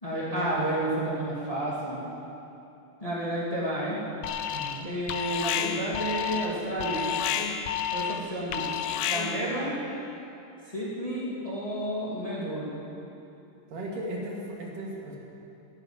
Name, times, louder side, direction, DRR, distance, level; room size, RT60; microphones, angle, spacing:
voice 1, 0.0-2.1 3.0-4.0 4.8-7.2 7.9-8.7 9.1-9.8 10.7-12.7, right 1 dB, 10° left, -7 dB, 2.4 m, -31 dB
Alarm, 4.2-4.8 5.1-9.5, left 9 dB, 75° left, 1.5 m, -30 dB
voice 2, 4.5-4.9 13.7-15.2, right 1 dB, 75° right, -2 dB, 3.7 m, -36 dB
16.0 x 9.0 x 9.2 m, 2.8 s
omnidirectional pair, 3.9 m